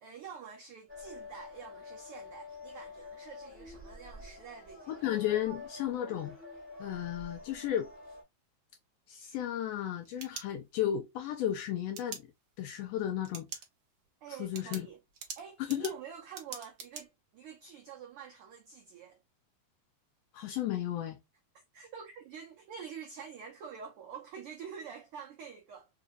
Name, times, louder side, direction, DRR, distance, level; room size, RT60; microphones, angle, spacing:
voice 1, 0.0-4.9 14.2-15.0 15.4-19.2 21.7-25.9, right 7 dB, 90° right, 1.2 m, -47 dB
sound 1, 0.9-8.2, left 3 dB, 10° right, 0.8 m, -48 dB
voice 2, 4.9-6.3 6.8-7.9 9.1-12.2 12.6-13.5 14.4-14.9 15.7-15.9 20.3-21.2, left 11 dB, 80° left, 1.5 m, -34 dB
sound 2, 9.8-11.0 11.9-12.2 13.2-13.7 14.0-14.1 14.5-17.0, right 7 dB, 65° right, 1.2 m, -44 dB
4.8 x 2.5 x 2.5 m
omnidirectional pair, 3.4 m